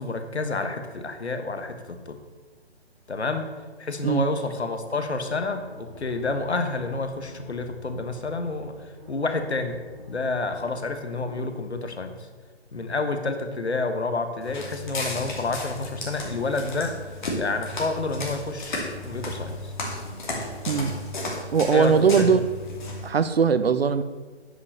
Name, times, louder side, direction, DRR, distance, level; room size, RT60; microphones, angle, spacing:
voice 1, 0.0-2.2 3.1-3.5 3.8-8.7 9.1-9.8 10.1-12.3 12.7-17.0 17.3-19.7 21.7-22.4, left 3 dB, 75° left, 7 dB, 1.4 m, -29 dB
sound 1, 4.8-11.4, left 2 dB, 10° left, 2.1 m, -47 dB
Walk footsteps, 14.4-23.1, left 2 dB, 45° left, 2.6 m, -34 dB
voice 2, 21.5-22.4 23.0-24.0, right 6 dB, 65° right, 12 dB, 0.7 m, -20 dB
9.8 x 5.3 x 6.6 m, 1.4 s
figure-of-eight pair, 140°, 33 cm